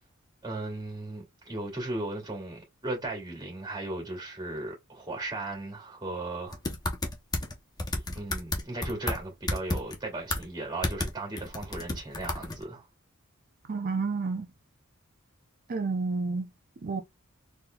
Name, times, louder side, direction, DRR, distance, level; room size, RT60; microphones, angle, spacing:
voice 1, 0.4-6.6 8.1-12.8, right 2 dB, 20° right, 2.5 m, -36 dB
sound 1, 6.5-7.5 7.8-9.2 9.5-10.0 10.3-10.5 10.8-11.1 11.4-12.6, left 2 dB, 20° left, 0.8 m, -31 dB
voice 2, 13.7-14.5 15.7-16.5 16.8-17.0, right 4 dB, 40° right, 0.5 m, -30 dB
4.2 x 3.5 x 2.3 m
head